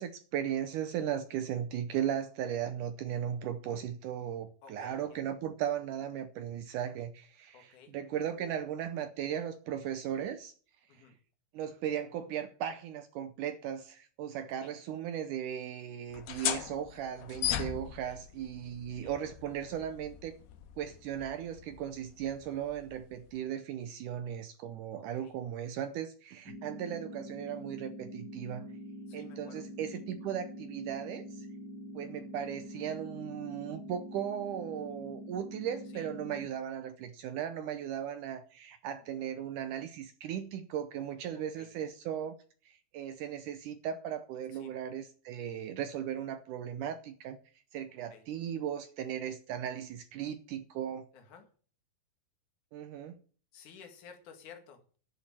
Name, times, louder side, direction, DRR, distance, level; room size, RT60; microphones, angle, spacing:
voice 1, 0.0-10.5 10.9-11.0 11.5-20.3 20.8-28.7 29.1-31.5 31.9-42.3 42.6-47.4 47.7-51.1 52.7-53.2, right 9 dB, 85° right, 1.8 m, -37 dB
voice 2, 4.6-5.3 7.5-7.9 10.9-11.1 14.6-14.7 17.8-18.2 18.9-19.1 25.0-25.4 29.1-29.6 35.9-36.1 39.0-39.5 41.5-41.7 44.5-44.7 48.1-48.3 51.1-51.5 53.5-54.8, left 6 dB, 55° left, 3.3 m, -55 dB
sound 1, 16.1-23.4, left 11 dB, 85° left, 3.0 m, -39 dB
sound 2, 26.5-36.5, equal, 50° right, 5.0 m, -45 dB
11.0 x 7.3 x 7.5 m
omnidirectional pair, 4.5 m